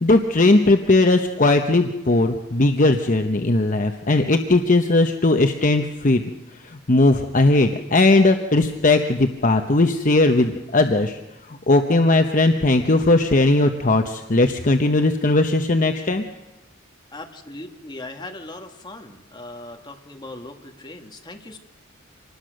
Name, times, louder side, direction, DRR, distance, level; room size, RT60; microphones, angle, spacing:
voice 1, 0.0-6.2 6.5-11.2 11.5-16.2, left 2 dB, 40° left, 6 dB, 0.9 m, -18 dB
voice 2, 17.1-21.6, left 2 dB, 20° left, 4 dB, 1.8 m, -39 dB
26.0 x 20.0 x 6.5 m, 1.0 s
head